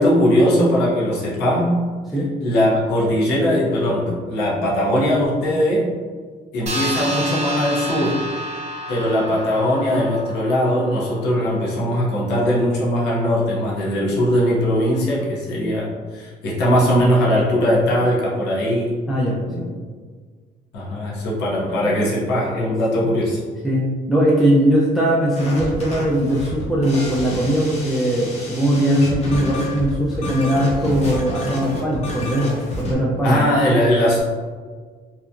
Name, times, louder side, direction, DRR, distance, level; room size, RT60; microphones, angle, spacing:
voice 1, 0.0-1.7 2.4-5.9 6.5-8.2 8.9-19.0 19.4-19.6 20.7-23.4 33.2-34.2, equal, 85° left, -5 dB, 0.7 m, -20 dB
sound 1, 6.7-11.5, right 1 dB, 40° right, 0.6 m, -30 dB
voice 2, 19.1-19.7 23.6-23.8 24.1-33.6, equal, ahead, -5 dB, 0.3 m, -20 dB
sound 2, 25.3-32.9, left 1 dB, 40° left, 0.7 m, -30 dB
2.8 x 2.2 x 2.4 m, 1.6 s
cardioid pair, 110°, 17 cm